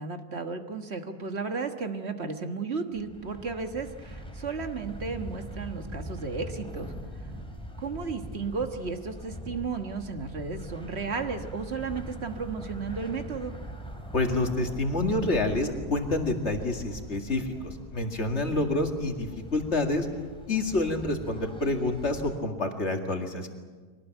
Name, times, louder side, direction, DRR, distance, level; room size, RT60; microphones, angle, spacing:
voice 1, 0.0-6.9 7.8-13.5, right 4 dB, 45° right, 7 dB, 1.6 m, -34 dB
sound 1, 2.9-22.4, equal, 5° left, 2.6 m, -42 dB
voice 2, 14.1-20.1 20.5-23.5, left 2 dB, 45° left, 4 dB, 2.4 m, -28 dB
24.0 x 18.5 x 9.1 m, 1.4 s
omnidirectional pair, 1.7 m